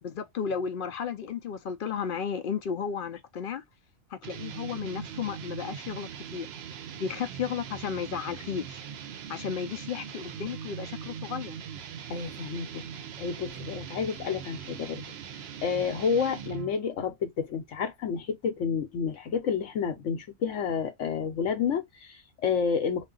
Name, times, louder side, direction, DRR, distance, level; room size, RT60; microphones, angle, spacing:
voice 1, 0.0-3.6 4.1-6.5 6.9-8.8 9.3-11.6, left 7 dB, 60° left, 0.5 m, -34 dB
sound 1, 4.2-16.8, right 8 dB, 65° right, 0.7 m, -41 dB
voice 2, 12.1-12.8 13.2-15.0 15.6-23.1, left 6 dB, 75° left, 1.1 m, -30 dB
3.6 x 2.5 x 3.7 m
omnidirectional pair, 1.3 m